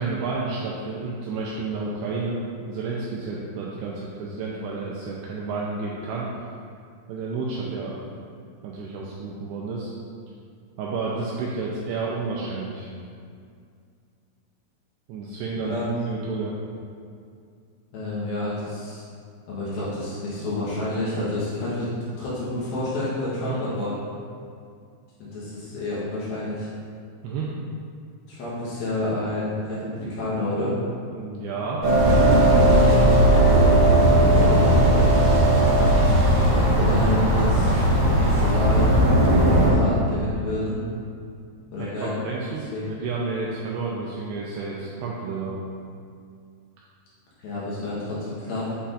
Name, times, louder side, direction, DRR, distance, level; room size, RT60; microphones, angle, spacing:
voice 1, 0.0-6.3 7.1-8.0 8.6-9.9 10.8-12.9 15.1-15.8 16.1-16.5 23.4-23.6 27.2-27.5 31.1-31.8 34.3-34.6 41.8-45.6, right 4 dB, 85° right, -4 dB, 2.4 m, -30 dB
voice 2, 17.9-19.0 19.5-21.9 22.2-23.9 25.2-26.7 28.3-30.8 33.0-33.5 36.4-37.8 38.1-38.9 39.3-40.8 41.7-42.2 42.7-42.9 47.4-48.8, left 2 dB, 70° left, -9 dB, 2.5 m, -29 dB
sound 1, 31.8-39.7, right 1 dB, 65° right, 3.0 m, -17 dB
8.4 x 5.6 x 2.5 m, 2.3 s
omnidirectional pair, 5.4 m